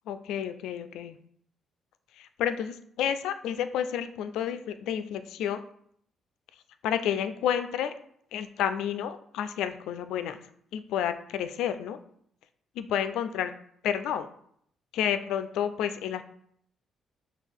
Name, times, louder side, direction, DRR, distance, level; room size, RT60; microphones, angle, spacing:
voice 1, 0.1-1.2 2.2-5.6 6.8-7.9 8.3-10.4 10.7-12.0 12.8-13.5 13.8-14.3 14.9-16.2, left 9 dB, 85° left, 11 dB, 0.3 m, -30 dB
6.0 x 2.4 x 3.5 m, 0.67 s
cardioid pair, 90°, 0 cm